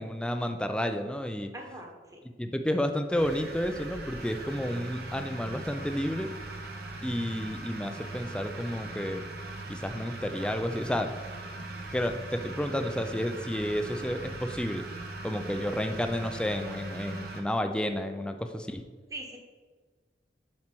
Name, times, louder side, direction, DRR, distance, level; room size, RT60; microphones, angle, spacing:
voice 1, 0.0-1.5 2.4-6.3 7.0-9.2 9.7-11.1 11.9-14.8 15.2-18.8, equal, 5° left, 7 dB, 0.4 m, -31 dB
voice 2, 1.5-2.2 19.1-19.4, right 1 dB, 20° right, 1 dB, 1.2 m, -41 dB
sound 1, 3.1-17.4, right 2 dB, 55° right, 1.0 m, -40 dB
7.5 x 4.4 x 6.0 m, 1.5 s
head